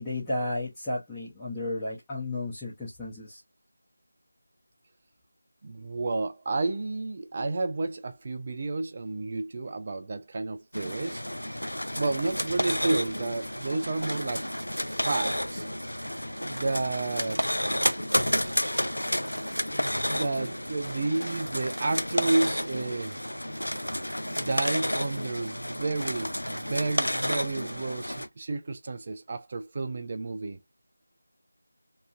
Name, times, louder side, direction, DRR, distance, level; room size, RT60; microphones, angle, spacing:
voice 1, 0.0-3.4, left 2 dB, 5° left, 0.7 m, -33 dB
voice 2, 5.6-11.2 11.9-14.5 14.8-15.7 16.4-17.4 19.7-23.2 23.5-23.6 24.3-30.6, right 3 dB, 30° right, 0.4 m, -31 dB
sound 1, 10.7-28.3, equal, 90° left, 0.5 m, -31 dB
2.9 x 2.5 x 2.4 m
figure-of-eight pair, 170°, 0 cm